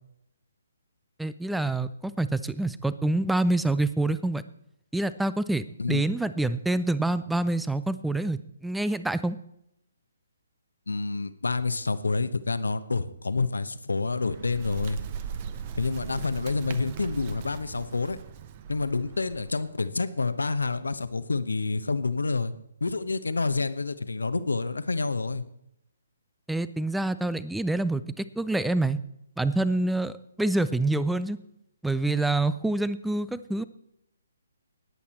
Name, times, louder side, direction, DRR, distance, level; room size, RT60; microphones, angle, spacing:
voice 1, 1.2-4.4 4.9-9.4 26.5-29.0 29.4-31.4 31.8-33.6, right 2 dB, 5° right, 15 dB, 0.5 m, -27 dB
voice 2, 10.9-15.0 15.8-18.2 18.7-22.5 22.8-25.4, left 3 dB, 75° left, 13 dB, 0.9 m, -28 dB
Bird, 14.0-19.7, right 7 dB, 35° right, 1.0 m, -39 dB
19.5 x 8.5 x 4.3 m, 0.78 s
figure-of-eight pair, 135°, 0 cm